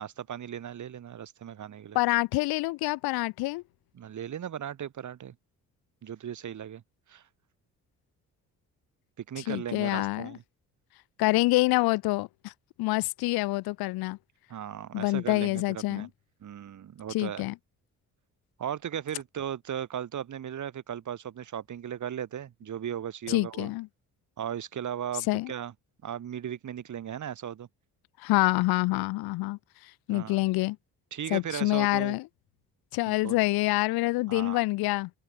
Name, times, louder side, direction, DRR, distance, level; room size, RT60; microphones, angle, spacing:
voice 1, 0.0-2.0 3.9-5.3 6.0-6.8 7.1-7.2 9.2-10.4 14.5-16.1 16.4-17.5 18.6-23.7 24.4-25.7 26.0-27.7 30.1-30.5 31.1-32.1 33.1-33.4 34.3-34.6, right 9 dB, 55° right, 1.5 m, -37 dB
voice 2, 1.9-3.6 9.4-10.4 11.2-12.5 12.8-14.2 14.9-16.1 17.1-17.5 23.3-23.9 25.3-25.5 28.2-30.8 31.3-32.3 32.9-35.1, left 21 dB, 90° left, 0.6 m, -27 dB
cardioid pair, 75°, 36 cm